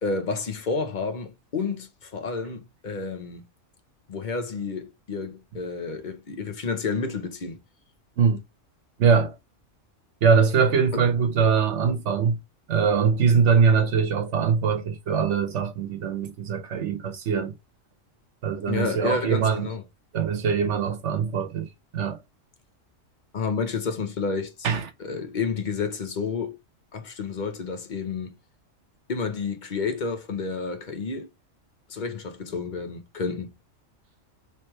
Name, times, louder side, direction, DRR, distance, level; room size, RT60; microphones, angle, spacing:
voice 1, 0.0-3.4 4.1-7.6 10.9-11.0 18.7-19.8 23.3-24.7 25.0-26.6 26.9-28.3 29.1-31.3 31.9-33.5, left 4 dB, 40° left, 0.8 m, -30 dB
voice 2, 9.0-9.3 10.2-12.3 12.7-17.5 18.4-19.7 20.1-21.7 21.9-22.2 24.6-24.8, right 6 dB, 65° right, 1.1 m, -22 dB
3.3 x 3.3 x 4.3 m
omnidirectional pair, 1.3 m